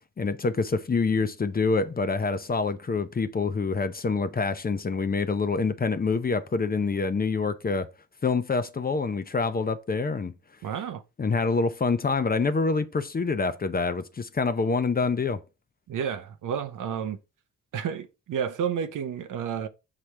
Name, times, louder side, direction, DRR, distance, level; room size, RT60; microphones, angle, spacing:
voice 1, 0.2-7.9 8.2-10.3 11.2-15.4, left 4 dB, 30° left, 0.6 m, -26 dB
voice 2, 10.6-11.0 15.9-17.2 17.7-19.7, right 8 dB, 75° right, 0.7 m, -31 dB
5.9 x 4.9 x 3.2 m
cardioid pair, 80°, 32 cm